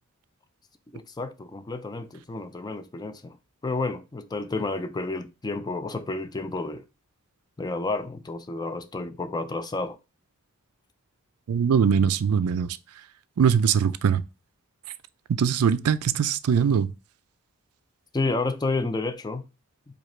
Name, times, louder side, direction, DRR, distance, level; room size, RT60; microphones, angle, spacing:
voice 1, 0.9-3.4 3.6-6.8 7.6-10.0 18.1-19.5, left 3 dB, 20° left, 0.4 m, -30 dB
voice 2, 11.5-12.8 13.4-14.2 15.3-16.9, right 7 dB, 90° right, 0.4 m, -22 dB
4.9 x 2.4 x 4.2 m
head